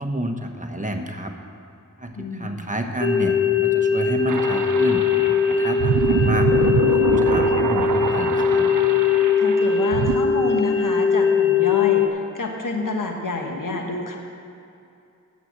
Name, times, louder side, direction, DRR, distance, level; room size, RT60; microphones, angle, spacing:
voice 1, 0.0-1.3 2.0-5.0 5.5-8.7, right 1 dB, 25° right, 4 dB, 1.1 m, -29 dB
voice 2, 2.2-2.5 9.4-14.2, left 3 dB, 75° left, 2 dB, 1.4 m, -28 dB
sound 1, 3.0-12.1, left 7 dB, 40° left, 1.0 m, -20 dB
sound 2, 4.3-10.2, right 7 dB, 70° right, 0.6 m, -25 dB
9.4 x 8.0 x 7.5 m, 2.6 s
cardioid pair, 55°, 32 cm